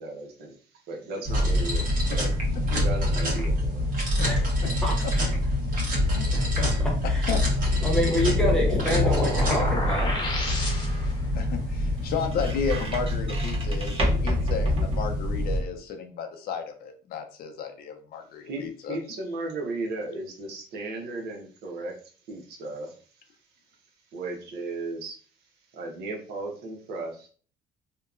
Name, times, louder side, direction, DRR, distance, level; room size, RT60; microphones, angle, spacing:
voice 1, 0.0-2.3 2.7-3.9 5.6-5.8 18.4-23.2 24.1-25.2 25.7-27.3, right 2 dB, 75° right, 1 dB, 0.8 m, -36 dB
sound 1, 1.3-15.6, left 1 dB, 55° right, 1.2 m, -25 dB
voice 2, 4.8-5.3 6.0-7.3 7.8-10.1, equal, 5° left, -3 dB, 1.0 m, -28 dB
voice 3, 6.1-6.5 6.7-7.9 11.4-14.0 14.2-19.0, left 6 dB, 65° left, 5 dB, 0.5 m, -33 dB
sound 2, 7.6-11.2, left 1 dB, 25° left, 0.8 m, -31 dB
sound 3, 9.4-15.6, equal, 35° right, 0.8 m, -34 dB
2.8 x 2.2 x 2.4 m, 0.42 s
cardioid pair, 110°, 17 cm